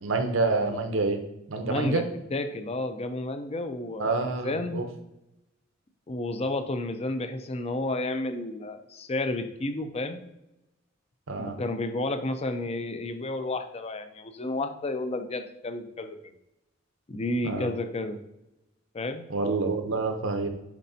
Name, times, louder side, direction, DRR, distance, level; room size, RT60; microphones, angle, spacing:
voice 1, 0.0-1.2 1.5-2.0 4.0-4.9 11.3-11.6 17.4-17.7 19.3-20.5, right 3 dB, 85° right, 5 dB, 0.8 m, -27 dB
voice 2, 1.6-2.0 2.3-4.1 4.4-4.9 6.1-10.2 11.4-16.3 17.1-18.2 18.9-19.2, left 2 dB, 30° left, 8 dB, 0.5 m, -31 dB
9.7 x 4.1 x 2.8 m, 0.89 s
head